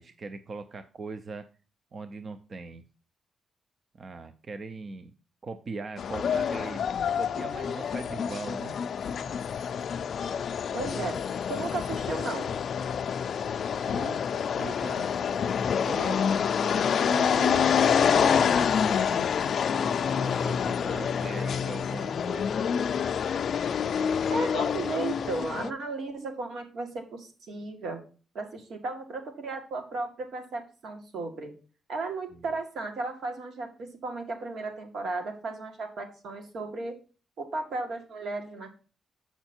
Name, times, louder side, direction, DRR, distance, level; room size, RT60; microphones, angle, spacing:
voice 1, 0.0-1.4 1.9-2.8 4.0-5.1 5.4-6.8 7.1-8.8 13.8-14.2 14.5-15.1 15.7-19.3 20.1-22.7 32.3-32.5, right 3 dB, 40° right, 10 dB, 0.5 m, -40 dB
sound 1, 6.0-25.7, left 7 dB, 55° left, 0.4 m, -27 dB
voice 2, 10.7-11.1 11.5-12.5 24.3-28.0 28.3-31.5 31.9-36.9 37.4-38.8, right 3 dB, 70° right, 4 dB, 2.0 m, -34 dB
7.9 x 5.7 x 4.3 m, 0.36 s
wide cardioid pair, 145°, 0 cm